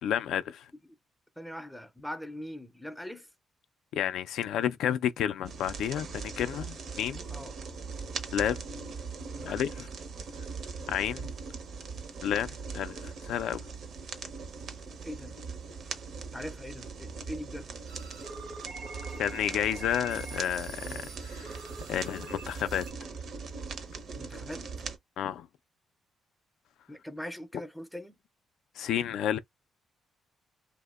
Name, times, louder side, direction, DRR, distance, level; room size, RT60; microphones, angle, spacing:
voice 1, 0.0-0.7 3.9-7.2 8.3-8.6 9.4-9.9 10.9-11.3 12.2-13.7 19.2-21.6 21.9-22.9 25.2-25.5 28.8-29.4, left 10 dB, 80° left, 0.3 m, -31 dB
voice 2, 1.4-3.3 7.3-7.5 9.4-9.6 15.0-15.4 16.3-17.7 24.2-24.6 26.9-28.2, equal, 5° left, 0.4 m, -41 dB
sound 1, 5.4-25.0, right 5 dB, 60° right, 0.5 m, -40 dB
sound 2, 17.9-22.9, right 3 dB, 85° right, 0.9 m, -45 dB
2.7 x 2.0 x 2.3 m
cardioid pair, 90°, 0 cm